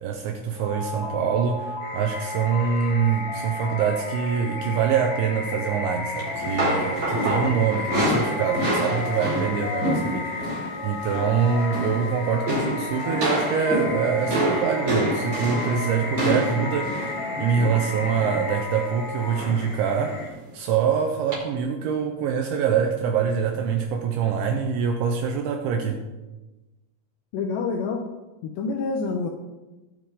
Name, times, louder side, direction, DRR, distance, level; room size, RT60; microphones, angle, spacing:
voice 1, 0.0-10.5 10.8-26.0, right 6 dB, 80° right, 4 dB, 2.8 m, -25 dB
sound 1, 0.6-19.5, left 4 dB, 65° left, 4.1 m, -34 dB
sound 2, 1.8-20.3, left 2 dB, 45° left, 3.1 m, -36 dB
sound 3, 6.2-10.7 11.0-11.3 11.6-12.1 12.5-18.5 19.3-19.7 20.1-20.2 21.3-21.4, equal, 30° right, 5.5 m, -27 dB
voice 2, 27.3-28.0 28.4-29.3, left 4 dB, 85° left, 3 dB, 2.5 m, -27 dB
20.5 x 7.4 x 3.8 m, 1.1 s
omnidirectional pair, 6.0 m